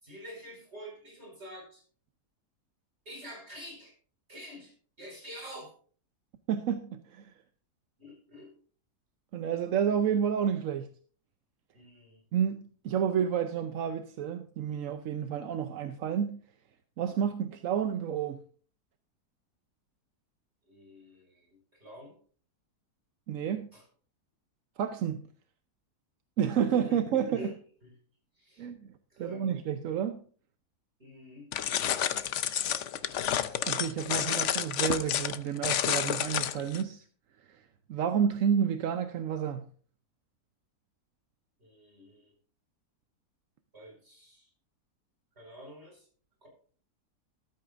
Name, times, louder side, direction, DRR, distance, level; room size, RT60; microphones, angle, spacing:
voice 1, 0.0-1.8 3.1-4.0 4.3-5.7 8.0-8.5 11.7-12.2 20.7-22.2 23.7-23.8 26.8-27.0 27.3-27.5 27.8-27.9 28.4-28.7 29.1-29.5 31.0-31.5 41.6-42.3 43.7-44.5 45.4-46.1 46.4-46.5, equal, 40° right, 5.4 m, -47 dB
voice 2, 6.5-7.3 9.3-10.9 12.3-16.4 17.0-18.4 23.3-23.7 24.8-25.2 26.4-27.5 28.6-28.9 29.2-30.2 33.7-37.0 37.5-39.6, right 8 dB, 60° right, 1.0 m, -30 dB
sound 1, 31.5-36.8, left 10 dB, 60° left, 0.8 m, -30 dB
13.5 x 13.5 x 2.5 m
omnidirectional pair, 1.7 m